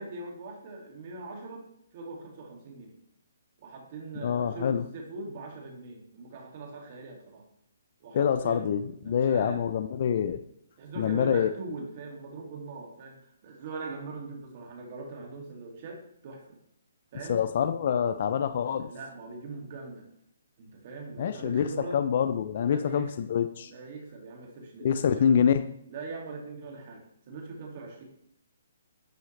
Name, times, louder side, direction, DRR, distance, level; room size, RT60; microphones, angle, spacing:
voice 1, 0.0-1.7 1.9-3.0 3.6-7.4 8.0-8.7 9.0-9.7 10.8-16.6 17.1-17.4 18.8-20.0 20.6-22.1 22.7-23.1 23.7-25.3 25.9-28.0, right 3 dB, 40° right, 0 dB, 2.2 m, -41 dB
voice 2, 4.2-4.8 8.1-10.4 11.0-11.5 17.3-18.9 21.2-21.7 21.9-23.7 24.8-25.6, left 8 dB, 45° left, 9 dB, 0.4 m, -26 dB
10.5 x 4.8 x 3.2 m, 0.73 s
hypercardioid pair, 160°, 0 cm